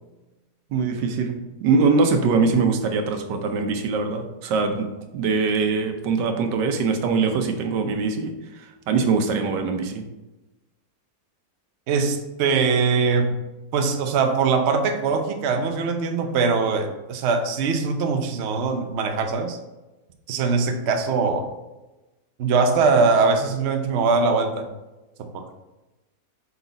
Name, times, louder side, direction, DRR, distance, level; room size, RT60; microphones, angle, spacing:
voice 1, 0.7-10.1, right 4 dB, 85° right, 5 dB, 1.4 m, -23 dB
voice 2, 11.9-13.4 13.7-19.6 20.3-21.5 22.4-24.7 25.2-25.5, right 4 dB, 60° right, 5 dB, 0.7 m, -22 dB
5.8 x 4.1 x 4.0 m, 1.1 s
omnidirectional pair, 1.8 m